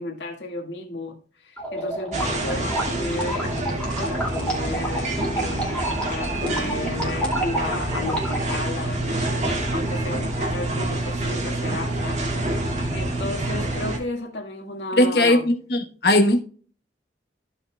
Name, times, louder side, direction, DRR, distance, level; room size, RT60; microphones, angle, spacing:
voice 1, 0.0-12.2 12.5-15.5, left 2 dB, 85° left, 1.8 m, -33 dB
sound 1, 1.6-8.6, right 1 dB, 5° left, 2.4 m, -30 dB
sound 2, 2.1-14.0, right 1 dB, 40° right, 2.0 m, -27 dB
voice 2, 15.0-16.4, left 1 dB, 60° left, 1.1 m, -19 dB
14.5 x 5.5 x 2.3 m
head